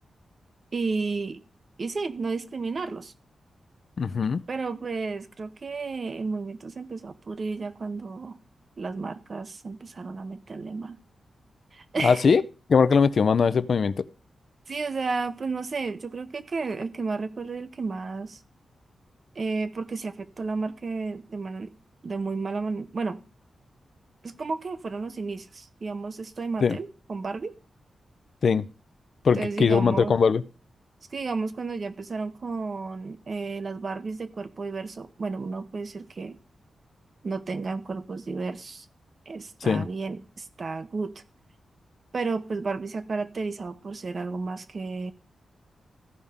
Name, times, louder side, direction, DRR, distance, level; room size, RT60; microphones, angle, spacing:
voice 1, 0.7-1.4 1.8-3.1 4.5-8.4 8.8-11.0 11.7-12.2 14.7-18.4 19.4-21.7 22.0-23.2 24.2-27.6 29.3-30.2 31.1-36.4 37.2-38.9 39.3-41.2 42.1-45.1, right 4 dB, 40° right, 0.7 m, -32 dB
voice 2, 4.0-4.4 12.0-12.4 12.7-14.1 26.6-26.8 28.4-28.7 29.2-30.4 39.7-39.9, left 5 dB, 50° left, 0.5 m, -21 dB
15.0 x 5.5 x 3.5 m
wide cardioid pair, 150°, 0 cm